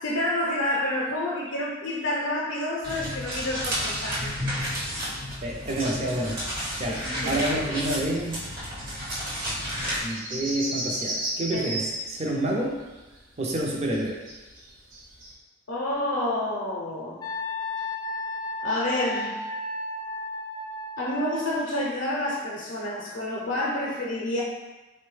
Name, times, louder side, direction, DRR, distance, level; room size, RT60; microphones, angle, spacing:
voice 1, 0.0-4.4 6.9-7.5 11.5-11.6 15.7-17.2 18.6-19.5 21.0-24.4, left 1 dB, 75° left, -5 dB, 0.5 m, -29 dB
sound 1, 2.8-10.0, equal, 55° right, 1.1 m, -31 dB
voice 2, 5.4-6.4 6.8-8.4 10.0-12.7 13.4-14.2, right 1 dB, 35° right, -1 dB, 0.5 m, -28 dB
sound 2, 8.1-8.6 8.9-9.0 9.2-9.3 9.6-15.3, right 1 dB, 90° right, 0.8 m, -34 dB
Wind instrument woodwind instrument, 17.2-21.4, left 2 dB, 20° left, 0.4 m, -33 dB
3.5 x 2.1 x 3.1 m, 1.1 s
head